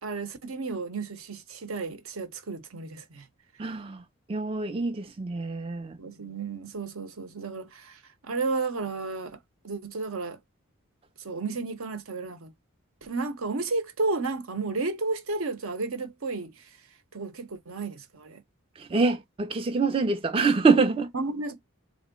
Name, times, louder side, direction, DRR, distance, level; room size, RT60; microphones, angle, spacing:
voice 1, 0.0-3.2 6.0-9.4 9.6-10.4 11.2-12.5 13.0-16.7 17.1-18.4 21.1-21.6, right 3 dB, 70° right, 0.8 m, -32 dB
voice 2, 3.6-4.0 4.3-6.0 18.8-21.1, right 4 dB, 25° right, 0.3 m, -25 dB
3.6 x 2.0 x 3.6 m
head